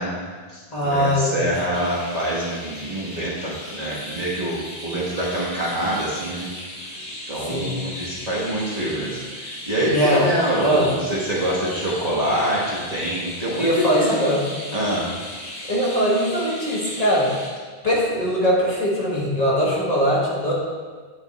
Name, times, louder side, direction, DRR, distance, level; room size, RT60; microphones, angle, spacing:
voice 1, 0.0-6.5 7.3-14.3 14.7-15.1, right 1 dB, 40° right, -5 dB, 1.2 m, -25 dB
voice 2, 0.7-1.5 7.5-7.7 9.9-10.3 10.6-10.9 13.6-14.4 15.7-17.4 17.8-20.5, equal, 40° left, -5 dB, 1.3 m, -21 dB
Chirp tweet, 1.7-17.5, left 1 dB, 85° left, 1.8 m, -37 dB
8.2 x 3.4 x 4.1 m, 1.5 s
omnidirectional pair, 1.1 m